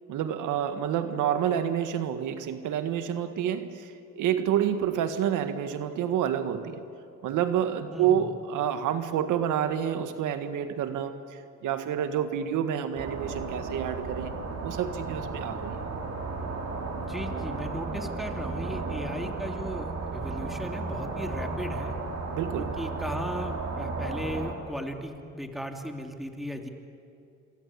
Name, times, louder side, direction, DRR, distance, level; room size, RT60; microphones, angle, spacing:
voice 1, 0.1-6.8 7.2-14.3 14.6-15.8 22.3-22.7, right 9 dB, 85° right, 9 dB, 1.8 m, -28 dB
sound 1, 13.0-24.5, right 3 dB, 60° right, 5.4 m, -34 dB
voice 2, 17.0-21.9 22.6-26.7, equal, ahead, 4 dB, 3.1 m, -36 dB
26.5 x 24.0 x 8.7 m, 2.7 s
cardioid pair, 90°, 30 cm